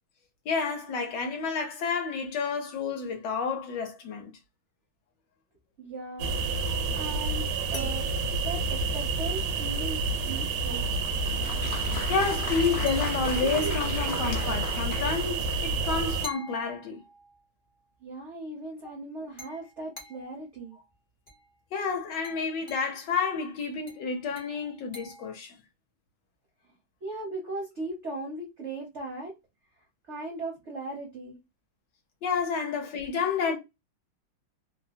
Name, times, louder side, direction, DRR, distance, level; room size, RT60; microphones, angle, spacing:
voice 1, 0.5-4.3 12.1-17.0 21.7-25.5 32.2-33.6, left 5 dB, 70° left, 1.2 m, -30 dB
voice 2, 5.8-6.4 6.9-8.1 8.4-10.9 18.0-20.8 27.0-29.3 29.8-31.4, right 2 dB, 60° right, 0.7 m, -38 dB
sound 1, 6.2-16.3, right 3 dB, 85° right, 1.4 m, -29 dB
sound 2, 6.7-9.8 12.9-13.7 16.2-17.4 19.4-20.4 21.3-21.5 22.2-23.0 23.9-25.4, right 1 dB, 35° left, 0.4 m, -46 dB
Applause, 11.0-15.9, left 6 dB, 90° left, 0.7 m, -38 dB
3.2 x 2.0 x 2.5 m
omnidirectional pair, 2.2 m